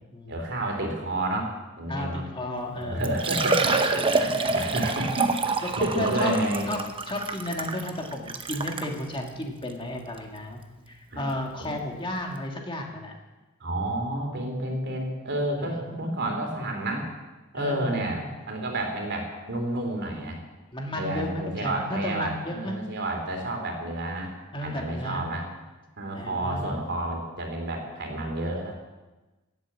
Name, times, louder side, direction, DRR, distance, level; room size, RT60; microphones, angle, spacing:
voice 1, 0.3-2.2 2.7-5.3 5.6-6.7 11.1-11.3 11.6-11.7 13.6-17.1 17.5-20.4 20.9-24.3 24.6-25.5 26.0-28.7, right 1 dB, 55° right, 2 dB, 3.2 m, -30 dB
voice 2, 1.9-3.0 5.6-6.4 6.7-10.6 10.9-13.1 15.6-16.1 17.6-18.4 20.7-22.7 24.5-25.3 26.1-26.8, left 1 dB, 25° left, 1 dB, 2.0 m, -33 dB
Liquid, 2.6-2.7 3.0-8.9 9.6-9.7 10.2-10.3 11.9-12.0 12.2-12.3, right 3 dB, 25° right, 0.9 m, -27 dB
18.0 x 8.1 x 7.4 m, 1.1 s
head